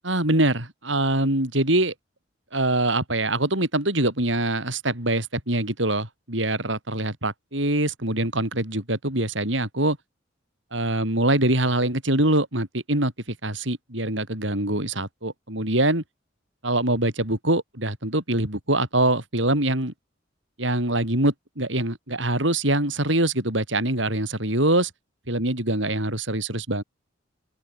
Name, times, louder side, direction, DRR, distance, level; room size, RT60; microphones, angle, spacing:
voice 1, 0.0-1.9 2.5-10.0 10.7-16.0 16.6-19.9 20.6-24.9 25.3-26.8, right 1 dB, 70° right, 7.2 m, -24 dB
open air
head